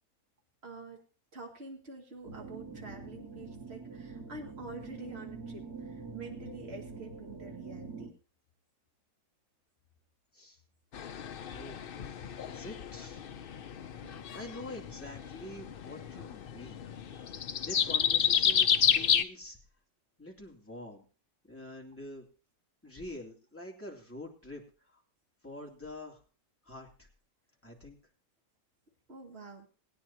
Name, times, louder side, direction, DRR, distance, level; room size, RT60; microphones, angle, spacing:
voice 1, 0.6-1.0 1.3-8.1 14.0-14.4 29.1-29.7, right 2 dB, 45° right, 1 dB, 2.5 m, -47 dB
sound 1, 2.2-8.1, right 4 dB, 75° right, 2.5 m, -45 dB
sound 2, 10.9-19.2, left 8 dB, 55° left, 0.6 m, -31 dB
voice 2, 11.5-11.8 12.5-13.2 14.1-16.8 17.6-19.6 20.2-21.0 21.4-22.3 22.8-24.6 24.9-25.0 25.4-26.2 26.6-27.1 27.6-28.0, left 1 dB, 10° left, -2 dB, 2.8 m, -46 dB
20.5 x 9.6 x 2.8 m, 0.36 s
omnidirectional pair, 1.6 m